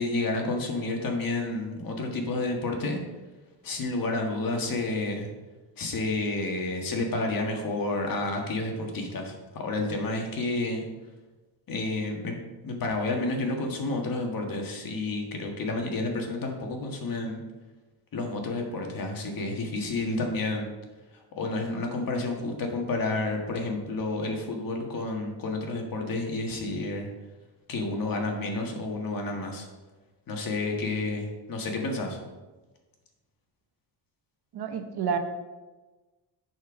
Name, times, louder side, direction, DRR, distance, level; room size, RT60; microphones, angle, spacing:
voice 1, 0.0-3.0 3.6-5.3 5.8-10.8 11.7-12.4 12.6-17.4 18.1-20.7 21.4-27.1 27.7-29.7 30.3-32.2, left 2 dB, 50° left, 2 dB, 1.7 m, -30 dB
voice 2, 34.5-35.2, right 7 dB, 60° right, 6 dB, 1.0 m, -29 dB
10.5 x 4.6 x 4.9 m, 1.2 s
cardioid pair, 125°, 43 cm